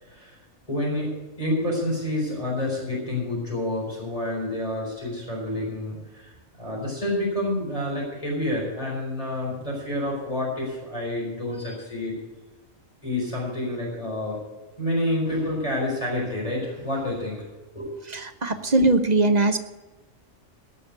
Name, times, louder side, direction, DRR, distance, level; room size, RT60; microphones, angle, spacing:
voice 1, 0.0-0.4 0.7-1.1 1.4-12.1 13.0-14.4 14.8-17.4 17.7-17.9, left 1 dB, 25° left, -4 dB, 4.6 m, -28 dB
voice 2, 18.1-19.6, right 2 dB, 40° right, 8 dB, 0.8 m, -20 dB
17.5 x 6.9 x 8.1 m, 1.1 s
omnidirectional pair, 1.3 m